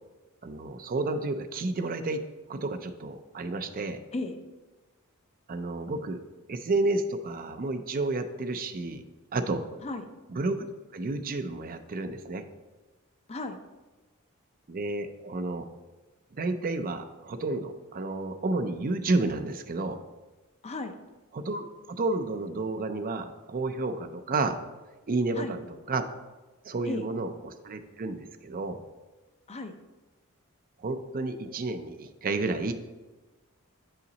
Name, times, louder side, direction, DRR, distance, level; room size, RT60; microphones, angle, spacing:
voice 1, 0.4-2.2 2.5-4.0 5.5-6.2 6.5-9.0 9.3-9.6 10.3-10.7 10.9-12.5 14.7-15.7 16.4-20.0 21.3-24.6 25.1-26.1 26.6-28.8 30.8-32.7, right 2 dB, 40° right, 9 dB, 0.5 m, -31 dB
voice 2, 13.3-13.6 20.6-21.0 25.4-25.6 26.9-27.1 29.5-29.7, left 2 dB, 30° left, 7 dB, 0.6 m, -35 dB
8.3 x 5.7 x 4.0 m, 1.2 s
head